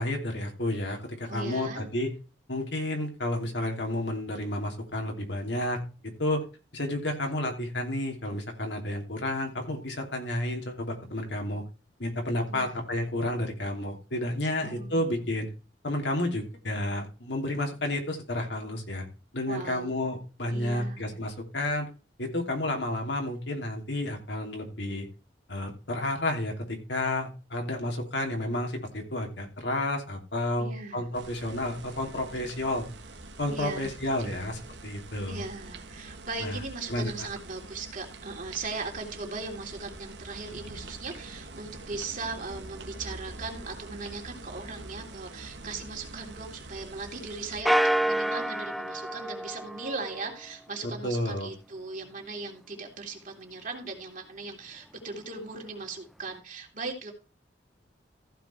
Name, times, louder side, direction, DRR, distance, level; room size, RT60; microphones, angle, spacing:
voice 1, 0.0-2.1 2.5-6.4 6.7-11.6 12.0-15.5 15.8-19.0 19.3-21.9 22.2-25.1 25.5-32.9 33.4-35.4 36.4-36.6 36.9-37.3 50.8-51.5, left 1 dB, 75° left, 3 dB, 3.0 m, -31 dB
voice 2, 1.3-1.8 12.5-12.7 14.6-15.4 19.5-19.9 20.5-21.3 30.6-31.3 33.5-34.4 35.3-57.1, right 3 dB, 45° right, 2 dB, 3.0 m, -39 dB
sound 1, 31.1-47.6, right 2 dB, 75° right, 1.4 m, -45 dB
sound 2, 47.6-50.4, right 1 dB, ahead, 0.4 m, -28 dB
15.0 x 5.2 x 4.4 m, 0.32 s
head